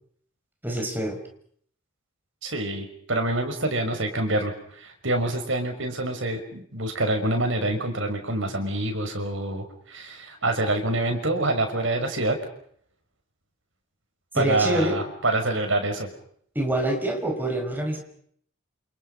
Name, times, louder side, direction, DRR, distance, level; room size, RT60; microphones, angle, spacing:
voice 1, 0.6-1.2 14.3-15.0 16.5-18.0, right 1 dB, 10° right, 3 dB, 5.7 m, -26 dB
voice 2, 2.4-12.4 14.3-16.1, right 2 dB, 70° right, 5 dB, 6.0 m, -26 dB
29.0 x 28.0 x 5.6 m, 0.63 s
head